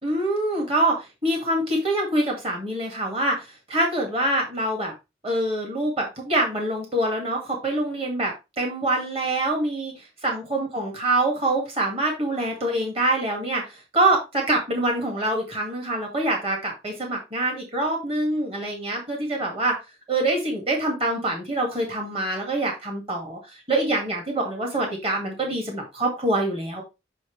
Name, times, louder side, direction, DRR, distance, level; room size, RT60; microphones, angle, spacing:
voice 1, 0.0-4.9 5.2-19.8 20.1-26.8, right 1 dB, 35° right, 0 dB, 2.2 m, -25 dB
6.2 x 6.2 x 3.3 m, 0.25 s
head